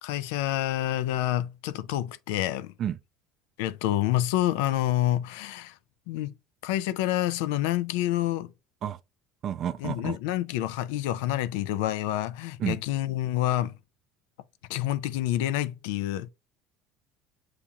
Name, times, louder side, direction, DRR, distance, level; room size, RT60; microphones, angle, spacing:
voice 1, 0.0-2.7 3.6-5.7 6.1-6.3 6.6-8.5 9.8-13.8 14.7-16.3, left 13 dB, 90° left, 0.3 m, -28 dB
voice 2, 9.4-10.2 12.6-12.8, right 10 dB, 45° right, 0.4 m, -30 dB
7.0 x 2.8 x 2.3 m
cardioid pair, 120°, 0 cm